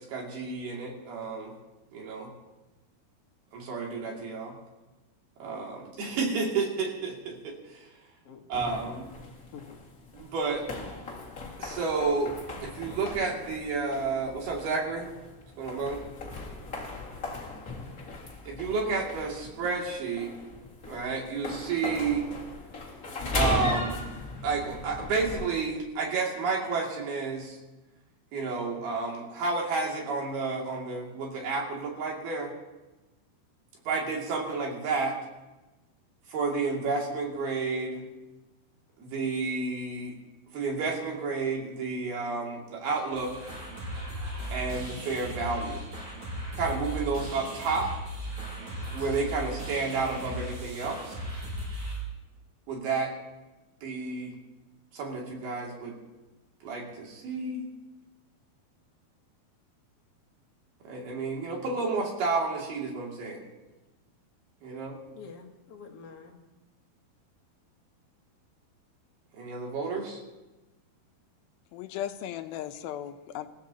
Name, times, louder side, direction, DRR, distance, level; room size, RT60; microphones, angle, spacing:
voice 1, 0.0-1.5 1.9-2.3 3.5-4.5 5.4-7.9 8.5-9.1 10.1-10.7 11.6-12.3 12.6-15.1 15.6-16.0 18.5-20.3 20.9-22.3 23.3-24.0 24.4-27.6 28.3-32.5 33.9-35.2 36.3-38.0 39.0-40.1 40.5-43.3 44.5-45.9 46.6-47.9 48.9-51.2 52.7-53.1 53.8-54.4 54.9-56.0 56.6-57.6 60.8-63.5 64.6-65.0 69.3-70.2, right 4 dB, 75° right, -1 dB, 4.6 m, -31 dB
sound 1, 8.5-25.5, left 3 dB, 30° left, 1.7 m, -38 dB
voice 2, 9.3-9.8 46.4-46.5 63.6-63.7 65.1-66.4, left 5 dB, 55° left, 0 dB, 1.8 m, -47 dB
sound 2, 43.1-52.0, right 1 dB, 45° right, 7.1 m, -37 dB
voice 3, 71.7-73.5, left 11 dB, 80° left, 8 dB, 2.4 m, -36 dB
28.0 x 15.5 x 2.9 m, 1.1 s
omnidirectional pair, 4.5 m